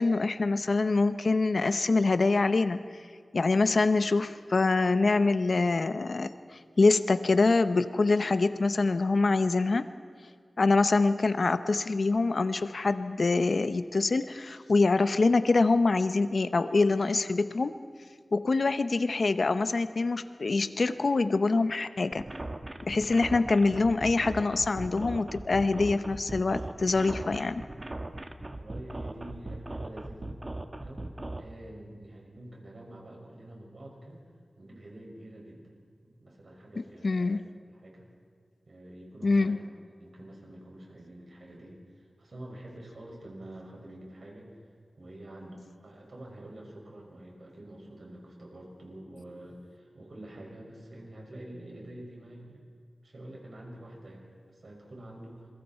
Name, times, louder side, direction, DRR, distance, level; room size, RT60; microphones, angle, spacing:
voice 1, 0.0-2.8 3.3-6.3 6.8-9.9 10.6-17.7 18.3-22.2 22.9-27.6 37.0-37.4 39.2-39.6, left 3 dB, 65° left, 11 dB, 0.9 m, -25 dB
sound 1, 22.1-31.4, right 2 dB, 35° right, 1.3 m, -38 dB
voice 2, 28.4-30.3 30.8-34.2 34.6-35.7 36.0-37.4 37.7-38.1 38.7-39.6 40.0-44.5 45.0-52.6 53.0-55.5, right 1 dB, 70° right, -2 dB, 6.4 m, -47 dB
28.0 x 22.5 x 4.5 m, 2.1 s
wide cardioid pair, 60°, 0 cm